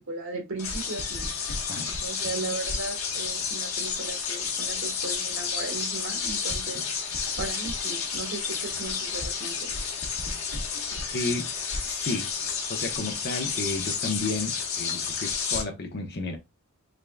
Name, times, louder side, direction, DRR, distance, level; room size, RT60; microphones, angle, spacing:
voice 1, 0.0-1.3 2.0-6.9 7.4-9.7, right 3 dB, 70° right, 1.4 m, -36 dB
sound 1, 0.6-15.6, left 5 dB, 85° left, 1.0 m, -31 dB
voice 2, 11.1-11.5 11.8-12.3 12.7-16.4, left 3 dB, 50° left, 0.9 m, -32 dB
3.8 x 3.4 x 2.2 m
head